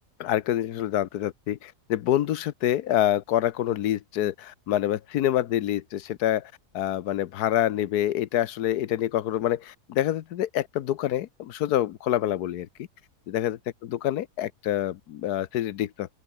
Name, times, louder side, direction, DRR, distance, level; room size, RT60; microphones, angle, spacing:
voice 1, 0.2-12.7 13.3-16.1, left 12 dB, 85° left, 1.3 m, -26 dB
open air
omnidirectional pair, 1.6 m